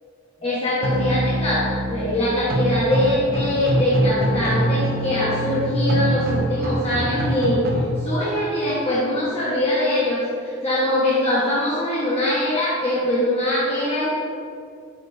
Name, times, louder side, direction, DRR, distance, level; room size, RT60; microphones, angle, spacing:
voice 1, 0.4-7.6 8.0-14.1, left 1 dB, 25° left, -9 dB, 1.3 m, -22 dB
sound 1, 0.8-7.8, right 1 dB, 45° right, 0.9 m, -24 dB
11.5 x 6.4 x 2.7 m, 2.3 s
head